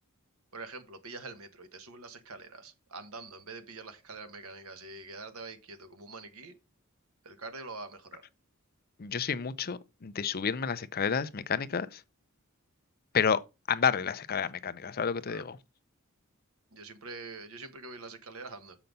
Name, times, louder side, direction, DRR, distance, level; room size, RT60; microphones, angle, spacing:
voice 1, 0.5-6.5 7.2-8.2 15.3-15.4 16.7-18.8, right 3 dB, 75° right, 1.4 m, -45 dB
voice 2, 9.0-12.0 13.1-13.4 13.7-15.6, left 6 dB, 45° left, 0.5 m, -30 dB
6.7 x 5.8 x 5.3 m
head